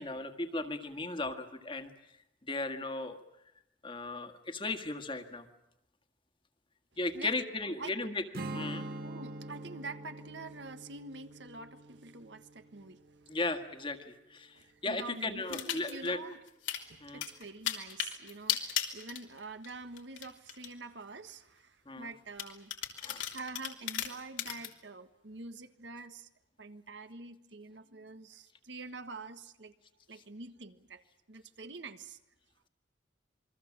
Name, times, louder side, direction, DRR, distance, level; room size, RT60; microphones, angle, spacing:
voice 1, 0.0-1.9 2.5-3.2 3.8-5.5 7.0-8.2 8.5-8.9 13.3-16.2 17.0-17.2 21.9-22.1 23.0-23.3, left 2 dB, 25° left, 1.8 m, -36 dB
voice 2, 7.7-8.1 9.0-13.3 14.5-16.4 16.9-22.7 23.3-26.3 26.6-29.7 30.1-31.0 31.3-32.2, right 3 dB, 70° right, 1.5 m, -46 dB
Strum, 8.3-13.7, right 2 dB, 50° right, 1.9 m, -44 dB
sound 1, 15.5-16.1 16.5-16.8 17.2-19.7 20.0-20.7 21.3-21.4 22.4-24.7, left 10 dB, 90° left, 3.2 m, -35 dB
27.5 x 22.5 x 7.4 m
head